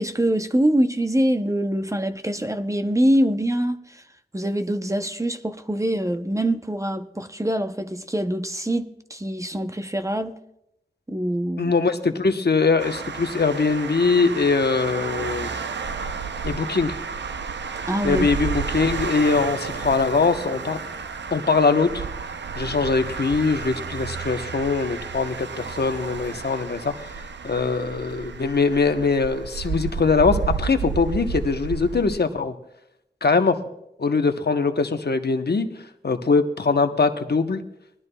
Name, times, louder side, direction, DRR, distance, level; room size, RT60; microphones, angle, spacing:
voice 1, 0.0-4.0 4.3-10.3 11.1-11.7 17.9-18.3, right 1 dB, 15° right, 0.6 m, -24 dB
voice 2, 11.6-15.5 16.4-17.0 18.0-20.8 21.3-22.1 22.6-27.1 27.4-32.5 33.2-33.6 34.0-35.7 36.0-37.6, left 4 dB, 65° left, 0.9 m, -22 dB
sound 1, 12.8-32.2, right 5 dB, 85° right, 0.5 m, -32 dB
20.0 x 12.5 x 2.2 m
wide cardioid pair, 65°, 18 cm